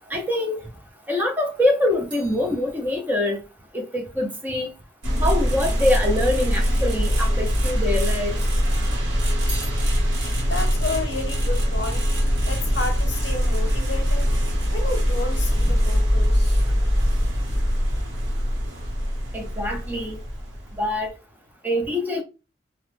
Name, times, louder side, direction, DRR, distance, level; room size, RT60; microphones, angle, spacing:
voice 1, 0.0-3.4 3.7-4.7 5.1-8.5 16.9-17.0 19.3-20.2 20.7-21.2 21.6-22.2, left 1 dB, 10° right, 0.5 m, -25 dB
sound 1, 1.2-5.5 6.3-7.1 7.4-8.6 8.9-12.4 12.7-13.2, right 3 dB, 25° right, 1.2 m, -46 dB
sound 2, 5.0-21.1, equal, 80° right, 1.0 m, -22 dB
voice 2, 10.4-12.1 12.5-14.3 14.7-16.6, left 3 dB, 65° left, 0.8 m, -31 dB
2.9 x 2.1 x 3.1 m
head